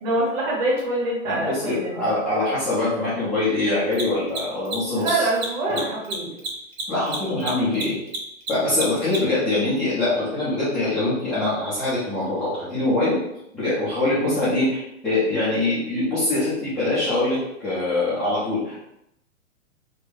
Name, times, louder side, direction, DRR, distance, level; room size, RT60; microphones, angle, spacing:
voice 1, 0.0-2.1 4.9-6.4 14.0-14.2, right 2 dB, 35° right, -4 dB, 1.4 m, -25 dB
Mechanisms, 0.8-0.9 3.8-9.4, right 3 dB, 50° right, 1.0 m, -31 dB
voice 2, 1.2-5.3 5.7-5.8 6.9-7.9 8.5-13.1 13.5-17.4 17.6-18.8, left 2 dB, ahead, -15 dB, 0.4 m, -23 dB
4.3 x 2.3 x 3.2 m, 0.81 s
figure-of-eight pair, 115°, 40 cm